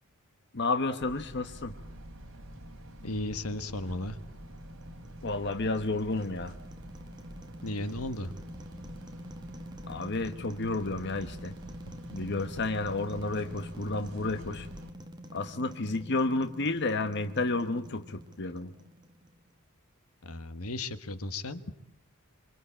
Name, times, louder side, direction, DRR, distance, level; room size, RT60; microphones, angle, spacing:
voice 1, 0.5-1.7 5.2-6.5 9.9-11.5 12.1-14.7 15.3-18.7, left 2 dB, 50° left, 9 dB, 1.2 m, -31 dB
sound 1, 1.0-14.9, equal, 60° right, 3.8 m, -47 dB
voice 2, 3.0-4.2 7.6-8.3 20.2-21.6, left 1 dB, 80° left, 11 dB, 1.6 m, -35 dB
sound 2, 4.3-19.5, equal, 20° right, 2.1 m, -47 dB
26.0 x 25.5 x 8.7 m, 0.73 s
head